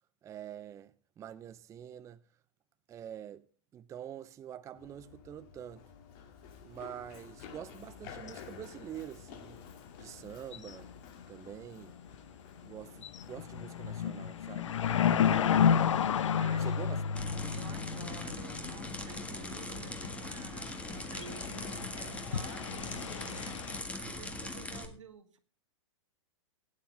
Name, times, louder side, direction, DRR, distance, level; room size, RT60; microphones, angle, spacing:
voice 1, 0.2-2.2 2.9-3.5 3.7-5.9 6.6-9.6 10.0-10.9 11.3-12.0 12.6-15.6 16.6-17.0, right 10 dB, 20° right, 0.5 m, -46 dB
Run, 4.8-16.3, left 7 dB, 45° left, 2.1 m, -52 dB
sound 1, 7.9-8.0 8.3-8.4 10.5-10.9 11.2-11.3 11.8-12.1 12.6-12.7 13.0-23.8, left 8 dB, 75° left, 0.8 m, -32 dB
voice 2, 16.4-16.9 17.5-25.4, right 7 dB, 80° right, 1.7 m, -51 dB
sound 2, 17.1-24.8, left 2 dB, 10° left, 1.6 m, -41 dB
17.0 x 9.7 x 3.3 m
hypercardioid pair, 115°, 16 cm